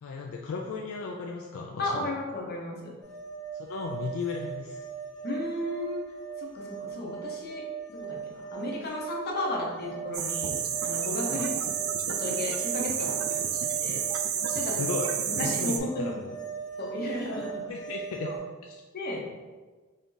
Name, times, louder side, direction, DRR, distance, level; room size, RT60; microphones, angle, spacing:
voice 1, 0.0-2.1 3.5-4.9 11.3-11.5 14.8-15.1 15.4-16.3 17.7-18.3 18.6-18.8, left 4 dB, 75° left, 1 dB, 0.3 m, -35 dB
voice 2, 1.8-2.9 5.2-6.0 6.4-7.6 7.9-11.5 12.2-13.3 13.8-14.0 14.5-14.8 15.3-16.1 16.8-17.6 18.2-18.3 18.9-19.2, left 2 dB, 45° left, -2 dB, 0.8 m, -34 dB
sound 1, 3.0-18.4, right 7 dB, 5° left, 0.9 m, -39 dB
sound 2, 10.1-15.8, right 8 dB, 75° right, 0.4 m, -30 dB
3.5 x 2.7 x 3.8 m, 1.3 s
head